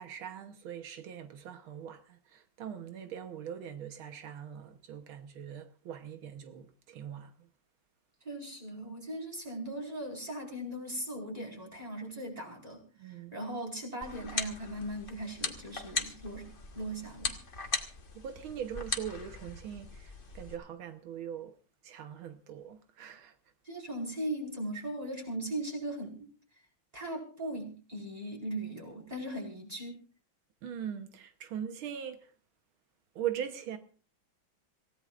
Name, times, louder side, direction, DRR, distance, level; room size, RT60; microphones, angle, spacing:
voice 1, 0.0-7.5 13.0-13.4 17.6-17.7 18.2-21.5 21.8-23.3 30.6-32.3 33.2-33.8, right 9 dB, 90° right, 1.9 m, -41 dB
voice 2, 8.2-17.4 23.6-26.3 26.9-30.0, right 1 dB, 20° right, 4.9 m, -39 dB
sound 1, 14.0-20.5, left 4 dB, 30° left, 1.3 m, -39 dB
26.5 x 16.5 x 2.5 m
omnidirectional pair, 2.2 m